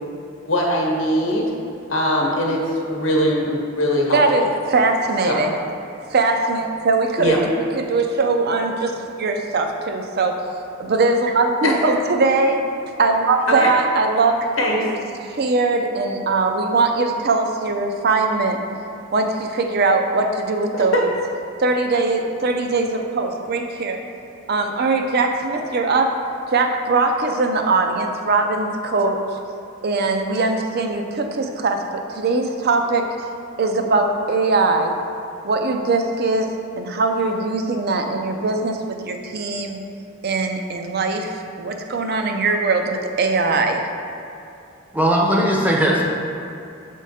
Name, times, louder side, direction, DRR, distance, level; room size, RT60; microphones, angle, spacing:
voice 1, 0.5-1.5 1.9-4.5 5.3-5.5 7.2-7.4 11.6-11.7 13.5-13.7 14.6-14.8 20.7-20.8, left 1 dB, 65° left, -1 dB, 0.9 m, -21 dB
voice 2, 4.1-5.5 6.1-10.3 10.8-12.6 13.0-14.9 15.4-18.6 19.1-21.1 21.6-24.0 24.5-26.2 26.5-29.2 29.8-33.3 33.6-35.0 35.4-36.5 36.8-38.8 39.0-39.8 40.2-43.8, right 3 dB, 50° right, 4 dB, 0.5 m, -21 dB
voice 3, 44.9-46.0, equal, 10° right, -2 dB, 0.6 m, -18 dB
7.3 x 3.6 x 4.2 m, 2.7 s
head